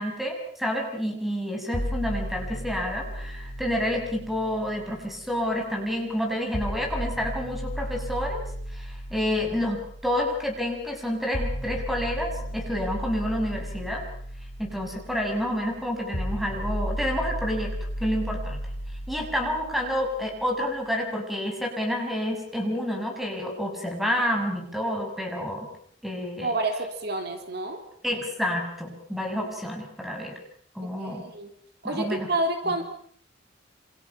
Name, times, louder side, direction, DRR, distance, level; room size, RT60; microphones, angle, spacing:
voice 1, 0.0-8.4 8.7-14.0 14.6-17.7 18.0-18.6 19.1-25.7 26.0-26.5 28.0-30.4 30.7-31.3 31.8-32.3 32.7-32.8, equal, ahead, 2 dB, 6.2 m, -29 dB
sound 1, 1.7-5.7 6.5-20.6, equal, 65° left, 4.3 m, -35 dB
voice 2, 26.4-27.8 30.8-31.5 31.8-32.8, right 2 dB, 55° right, 5 dB, 3.2 m, -29 dB
27.5 x 27.5 x 5.8 m, 0.62 s
head